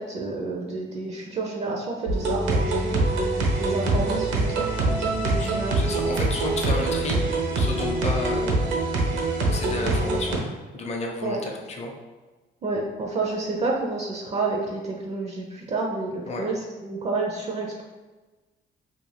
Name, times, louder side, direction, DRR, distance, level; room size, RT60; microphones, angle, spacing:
voice 1, 0.0-3.0 3.6-5.8 11.2-11.4 12.6-17.8, right 3 dB, 35° right, -1 dB, 0.4 m, -30 dB
sound 1, 2.1-10.4, right 2 dB, 75° right, 0.6 m, -24 dB
voice 2, 5.4-7.2 7.5-8.6 9.4-10.4 10.7-11.9 16.3-16.4, left 2 dB, 35° left, 1 dB, 0.5 m, -31 dB
2.4 x 2.2 x 3.2 m, 1.2 s
cardioid pair, 95°, 19 cm